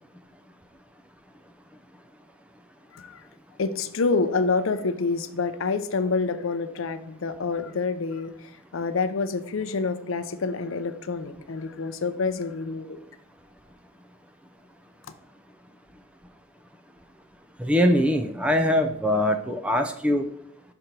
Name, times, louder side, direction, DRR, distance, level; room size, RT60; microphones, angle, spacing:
voice 1, 3.6-13.0, left 4 dB, 75° left, 11 dB, 0.5 m, -27 dB
voice 2, 17.6-20.3, left 1 dB, 5° right, 6 dB, 0.4 m, -22 dB
5.9 x 4.3 x 5.2 m, 0.73 s
head